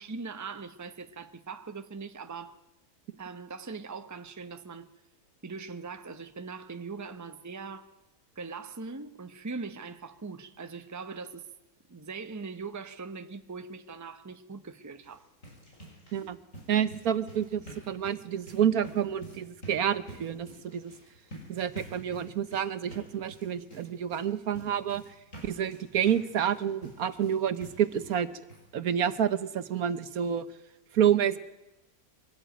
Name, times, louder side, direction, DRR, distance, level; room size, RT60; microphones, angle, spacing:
voice 1, 0.0-2.6 3.2-4.9 5.4-7.9 8.4-11.5 11.9-15.3, right 4 dB, 15° right, 0.8 m, -41 dB
sound 1, 15.0-28.2 28.5-28.6 29.1-29.2 29.5-29.6, right 1 dB, 55° left, 7.2 m, -49 dB
voice 2, 16.7-20.9 21.5-25.0 25.4-28.3 28.7-30.5 30.9-31.4, right 9 dB, 75° right, 1.4 m, -28 dB
23.5 x 17.0 x 9.2 m
omnidirectional pair, 1.6 m